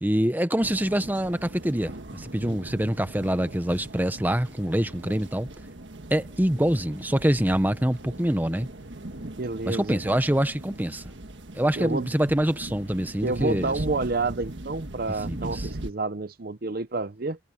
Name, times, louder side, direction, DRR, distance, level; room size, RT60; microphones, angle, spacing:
voice 1, 0.0-5.5 6.1-8.7 9.7-11.0 11.5-13.7 15.3-15.7, equal, 10° right, 0.9 m, -25 dB
sound 1, 0.6-15.9, right 1 dB, 70° right, 1.6 m, -40 dB
voice 2, 9.2-10.0 11.8-12.1 13.2-17.4, right 3 dB, 50° right, 0.7 m, -29 dB
head